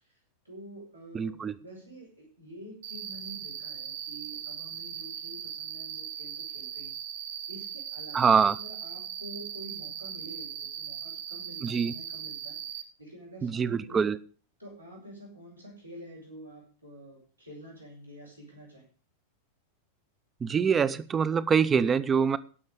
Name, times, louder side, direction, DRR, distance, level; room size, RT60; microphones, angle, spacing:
voice 1, 0.4-7.0 7.5-14.1 14.6-18.9, equal, 85° right, -2 dB, 5.7 m, -48 dB
voice 2, 1.1-1.5 8.1-8.6 11.6-11.9 13.4-14.2 20.4-22.4, right 6 dB, 20° right, 16 dB, 0.8 m, -24 dB
Cricket, 2.8-12.8, right 9 dB, 55° right, 1.5 m, -39 dB
17.5 x 6.4 x 5.0 m, 0.39 s
figure-of-eight pair, 90°, 0 cm